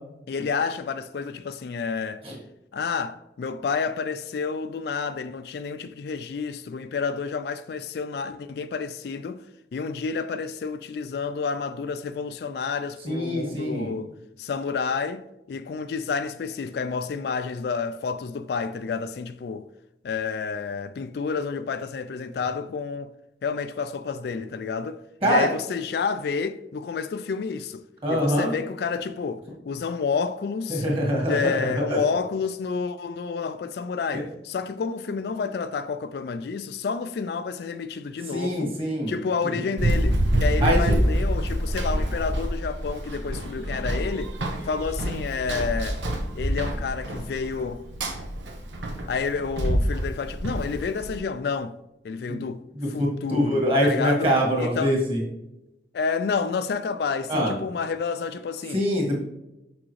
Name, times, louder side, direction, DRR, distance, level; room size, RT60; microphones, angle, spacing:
voice 1, 0.3-2.2 2.7-9.4 9.7-14.1 14.4-19.7 20.0-23.1 23.4-30.8 31.3-38.8 39.1-44.4 44.6-46.0 46.3-47.8 49.1-51.7 52.0-52.6 52.9-55.0 55.9-58.8, left 5 dB, 55° left, 0.3 m, -30 dB
voice 2, 13.1-13.9 25.2-25.5 28.0-28.5 30.7-31.6 31.9-32.0 34.1-34.2 38.3-39.1 40.6-41.0 52.3-52.4 52.7-55.2 57.3-57.5 58.7-59.1, equal, 30° right, 1.9 m, -24 dB
Run, 39.8-51.2, right 1 dB, 85° right, 1.2 m, -26 dB
6.1 x 5.9 x 3.1 m
head